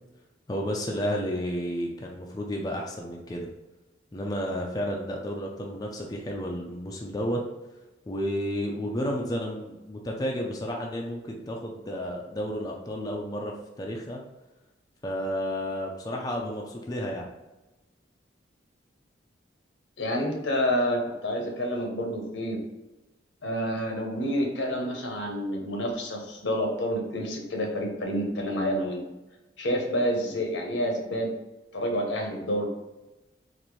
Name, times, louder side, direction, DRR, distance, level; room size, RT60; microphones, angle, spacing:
voice 1, 0.5-3.5 4.1-7.4 8.1-14.2 15.0-17.3, equal, 20° left, 0 dB, 0.4 m, -32 dB
voice 2, 20.0-22.6 23.4-29.0 29.6-31.3 31.7-32.7, equal, 80° left, 1 dB, 0.9 m, -28 dB
4.1 x 2.6 x 3.1 m, 1.0 s
head